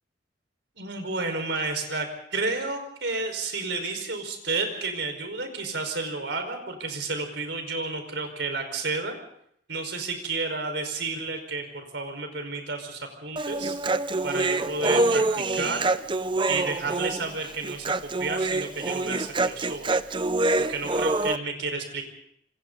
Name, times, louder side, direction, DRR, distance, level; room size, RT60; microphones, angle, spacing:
voice 1, 0.8-2.1 2.3-9.1 9.7-13.8 14.2-15.8 16.5-20.0 20.6-22.1, right 3 dB, 65° right, 5 dB, 5.1 m, -31 dB
Human voice, 13.4-21.4, right 2 dB, 25° right, 0.7 m, -26 dB
27.5 x 25.0 x 4.1 m, 0.69 s
head